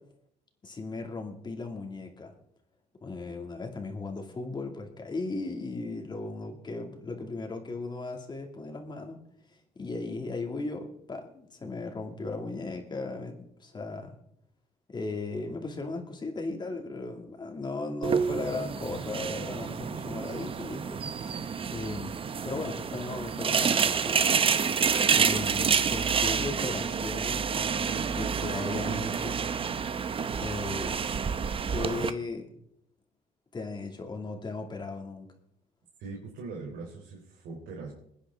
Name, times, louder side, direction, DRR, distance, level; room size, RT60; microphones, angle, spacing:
voice 1, 0.6-2.3 3.0-9.2 9.5-14.2 14.9-21.4 21.7-22.2 22.4-24.3 25.1-27.5 28.1-29.4 30.4-31.0 31.7-32.5 33.5-35.3, left 3 dB, 25° left, 3 dB, 2.4 m, -36 dB
sound 1, 18.0-32.1, right 6 dB, 30° right, 0.7 m, -28 dB
voice 2, 36.0-37.9, right 4 dB, 80° right, -2 dB, 3.4 m, -41 dB
22.5 x 9.9 x 3.7 m, 0.73 s
cardioid pair, 110°, 17 cm